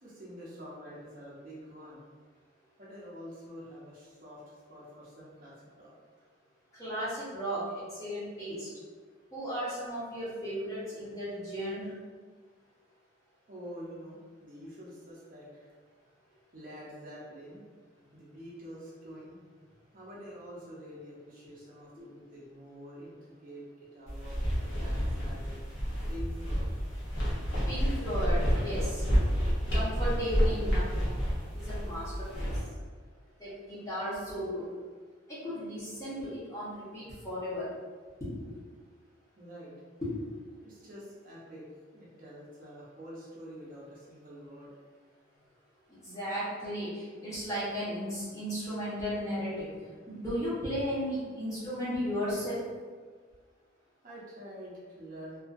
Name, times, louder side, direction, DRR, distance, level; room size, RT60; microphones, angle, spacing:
voice 1, 0.0-2.0 2.8-5.9 13.5-15.7 16.5-17.6 18.1-19.4 19.9-23.2 23.4-25.6 26.1-26.7 39.4-39.7 40.6-41.7 41.9-44.7 54.0-55.4, equal, 45° right, -7 dB, 0.6 m, -47 dB
voice 2, 6.7-8.7 9.3-11.9 27.7-29.1 29.7-30.9 31.5-32.5 33.4-34.7 35.3-37.7 38.2-38.5 40.0-40.2 45.9-52.6, equal, 15° left, -10 dB, 0.8 m, -35 dB
sound 1, 24.1-32.6, equal, 70° left, 0.8 m, -30 dB
2.5 x 2.3 x 2.4 m, 1.5 s
head